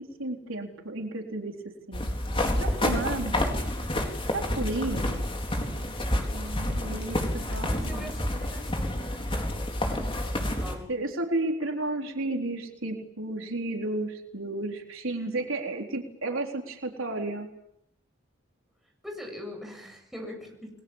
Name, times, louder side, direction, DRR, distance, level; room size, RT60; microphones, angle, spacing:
voice 1, 0.2-1.5 1.9-2.1 2.6-3.7 4.3-5.3 6.3-8.1 10.9-17.5, right 2 dB, 75° right, 2 dB, 4.1 m, -32 dB
sound 1, 1.9-10.7, left 1 dB, 25° left, 4.3 m, -29 dB
voice 2, 7.5-9.1 10.6-10.9 19.0-20.7, left 1 dB, ahead, 1 dB, 7.5 m, -42 dB
30.0 x 21.5 x 7.4 m, 0.78 s
head